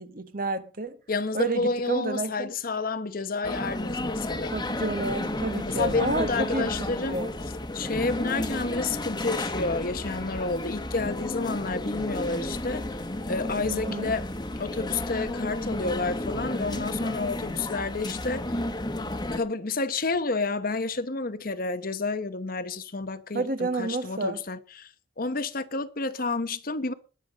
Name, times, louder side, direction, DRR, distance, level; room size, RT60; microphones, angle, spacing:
voice 1, 0.0-1.0 1.3-2.5 4.5-7.3 13.7-14.1 23.3-24.4, right 2 dB, 45° right, 1.3 m, -30 dB
voice 2, 1.1-4.6 5.6-7.2 7.7-12.9 13.3-14.3 14.6-18.5 19.3-24.9 25.2-26.9, left 3 dB, 45° left, 1.0 m, -30 dB
sound 1, 3.4-19.4, left 1 dB, 20° left, 1.3 m, -32 dB
20.0 x 7.2 x 5.2 m
head